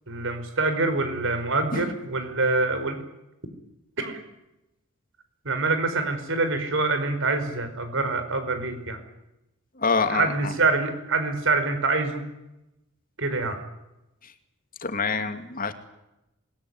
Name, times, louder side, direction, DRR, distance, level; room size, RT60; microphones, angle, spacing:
voice 1, 0.1-3.0 4.0-4.2 5.4-9.0 10.1-12.2 13.2-13.6, right 3 dB, 60° right, 9 dB, 5.1 m, -25 dB
voice 2, 9.8-10.5 14.8-15.7, left 4 dB, 40° left, 8 dB, 2.6 m, -26 dB
27.5 x 21.5 x 9.7 m, 0.92 s
head